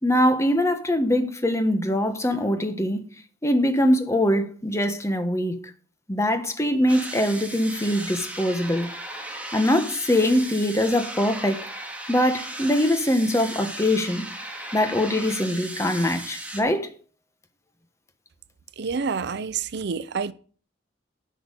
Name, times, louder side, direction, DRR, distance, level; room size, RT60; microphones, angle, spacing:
voice 1, 0.0-3.0 3.4-5.6 6.1-8.9 9.5-11.7 12.1-14.3 14.7-16.9, left 1 dB, 15° left, 1.3 m, -22 dB
sound 1, 6.9-16.6, right 1 dB, 10° right, 1.9 m, -36 dB
voice 2, 18.8-20.3, right 5 dB, 65° right, 0.5 m, -28 dB
10.5 x 5.9 x 8.4 m
head